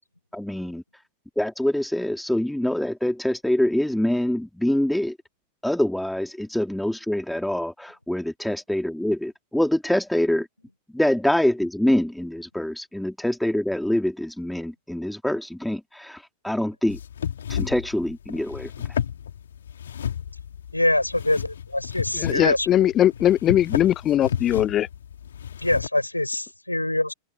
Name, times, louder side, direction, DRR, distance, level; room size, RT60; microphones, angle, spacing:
voice 1, 0.3-0.8 1.4-5.2 5.6-10.5 10.9-17.0 17.5-18.7, left 1 dB, ahead, 2.3 m, -25 dB
sound 1, 16.9-25.9, left 9 dB, 65° left, 2.4 m, -32 dB
voice 2, 20.7-22.7 25.6-27.1, left 1 dB, 85° left, 4.2 m, -24 dB
voice 3, 22.1-24.9, left 11 dB, 30° left, 0.8 m, -20 dB
figure-of-eight pair, 90°, 0 cm